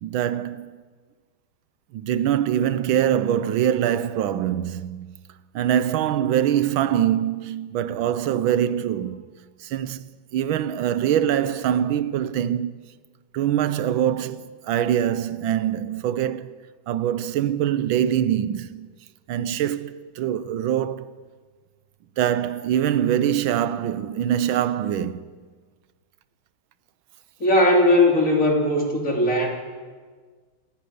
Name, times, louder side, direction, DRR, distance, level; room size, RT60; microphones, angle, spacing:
voice 1, 0.0-0.8 1.9-5.1 5.5-9.3 9.6-12.7 13.3-16.6 16.9-18.9 19.3-21.1 22.2-25.3, right 10 dB, 80° right, 1.6 m, -24 dB
voice 2, 27.4-29.5, left 1 dB, 40° left, 3.6 m, -18 dB
26.5 x 10.5 x 9.4 m
omnidirectional pair, 2.2 m